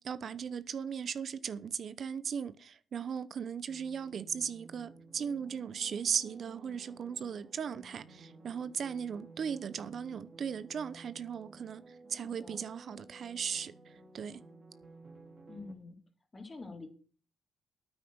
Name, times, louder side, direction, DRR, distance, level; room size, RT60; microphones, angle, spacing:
voice 1, 0.0-14.4, right 7 dB, 55° right, 0.8 m, -37 dB
sound 1, 3.7-15.7, right 3 dB, 35° right, 2.7 m, -54 dB
voice 2, 12.1-12.7 15.5-16.0 16.3-16.9, left 3 dB, 25° left, 3.4 m, -47 dB
9.2 x 9.0 x 6.3 m
cardioid pair, 90°, 0 cm